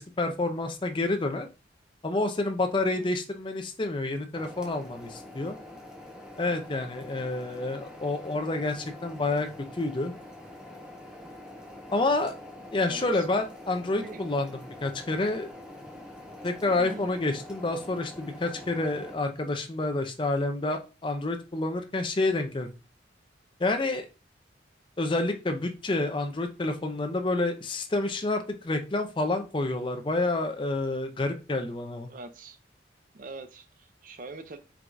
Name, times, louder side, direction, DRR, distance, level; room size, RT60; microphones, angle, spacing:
voice 1, 0.0-1.5 2.0-5.6 6.4-10.1 11.9-12.4 12.7-14.5 14.8-15.5 16.4-22.7 23.6-24.1 25.0-32.1, left 2 dB, 25° left, 6 dB, 0.5 m, -29 dB
sound 1, 4.3-19.1, left 1 dB, 5° right, 0.8 m, -45 dB
voice 2, 7.7-8.1 12.9-13.3 14.0-14.3 16.7-17.1 32.1-32.6 33.1-34.6, right 3 dB, 45° right, 9 dB, 0.5 m, -44 dB
4.6 x 3.5 x 2.6 m, 0.31 s
head